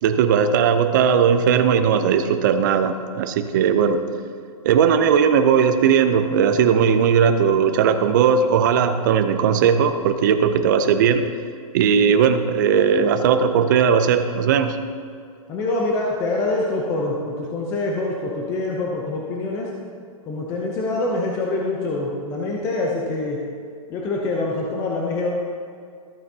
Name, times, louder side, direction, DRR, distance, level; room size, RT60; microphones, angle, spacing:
voice 1, 0.0-4.0 4.6-11.3 11.7-14.8, right 7 dB, 35° right, 9 dB, 0.5 m, -18 dB
voice 2, 15.5-19.7 20.3-23.4 23.9-25.4, left 2 dB, 15° left, -2 dB, 0.6 m, -25 dB
14.0 x 8.8 x 2.8 m, 2.3 s
hypercardioid pair, 165°, 18 cm